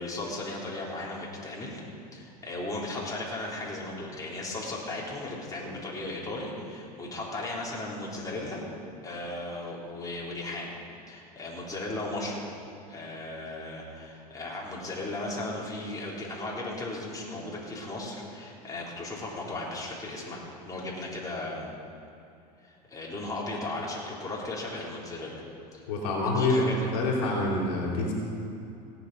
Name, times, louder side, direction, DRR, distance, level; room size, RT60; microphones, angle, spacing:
voice 1, 0.0-1.8 2.1-8.6 9.0-10.8 11.1-12.5 12.9-21.7 22.6-25.4 25.7-25.9 26.2-26.9, left 2 dB, 15° left, -4 dB, 3.5 m, -36 dB
voice 2, 25.9-28.1, left 2 dB, 75° left, -2 dB, 3.3 m, -26 dB
17.0 x 8.9 x 5.4 m, 2.6 s
hypercardioid pair, 100°, 21 cm